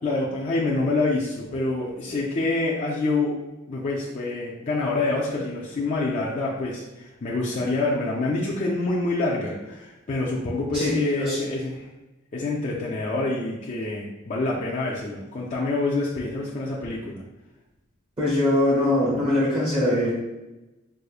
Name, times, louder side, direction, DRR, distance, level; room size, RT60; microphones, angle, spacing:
voice 1, 0.0-3.4 3.7-11.9 12.3-17.2, left 2 dB, 35° left, -5 dB, 0.4 m, -26 dB
voice 2, 18.2-20.1, left 1 dB, 25° right, -8 dB, 0.7 m, -22 dB
4.7 x 2.0 x 2.4 m, 1.0 s
head